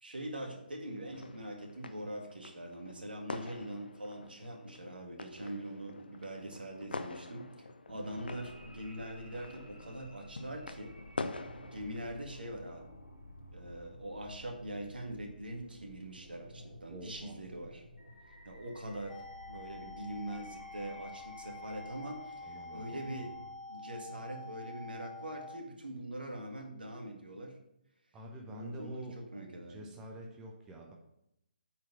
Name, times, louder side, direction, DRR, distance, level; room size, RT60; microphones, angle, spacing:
voice 1, 0.0-10.9 11.7-12.9 13.5-17.8 18.5-19.2 19.5-23.3 23.7-27.6 28.5-29.8, right 1 dB, 70° right, 3 dB, 1.9 m, -43 dB
sound 1, 0.9-12.0, left 3 dB, 70° left, 0.7 m, -46 dB
sound 2, 8.3-23.5, equal, 90° left, 3.3 m, -54 dB
voice 2, 16.9-17.4 22.4-23.0 28.1-29.2 29.6-30.9, right 1 dB, 10° right, 1 dB, 0.8 m, -47 dB
sound 3, 19.1-25.6, left 3 dB, 5° left, 0.4 m, -47 dB
8.3 x 4.7 x 5.6 m, 0.80 s
figure-of-eight pair, 140°, 5 cm